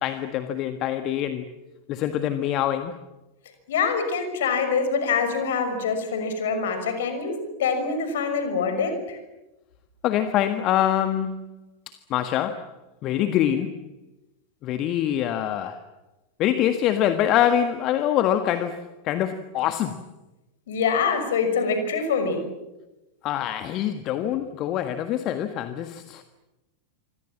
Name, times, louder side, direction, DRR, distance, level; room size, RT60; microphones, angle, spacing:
voice 1, 0.0-1.5 1.9-3.0 10.0-11.5 11.9-12.7 13.0-13.8 14.6-15.8 16.4-20.1 23.2-26.2, left 11 dB, 35° left, 1.6 m, -25 dB
voice 2, 3.7-9.2 20.7-22.5, left 5 dB, 60° left, 6.1 m, -25 dB
26.5 x 26.0 x 7.5 m
figure-of-eight pair, 90°, 0 cm